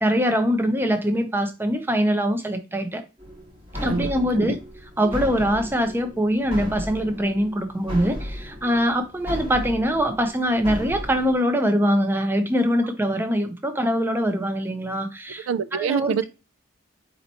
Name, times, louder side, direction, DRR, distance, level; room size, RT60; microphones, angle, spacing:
voice 1, 0.0-3.0 3.8-4.6 5.0-16.1, equal, 10° right, 0.5 m, -23 dB
sound 1, 3.2-11.3, equal, 25° right, 1.3 m, -35 dB
voice 2, 15.5-16.3, right 6 dB, 85° right, 0.3 m, -25 dB
4.3 x 2.8 x 4.0 m
head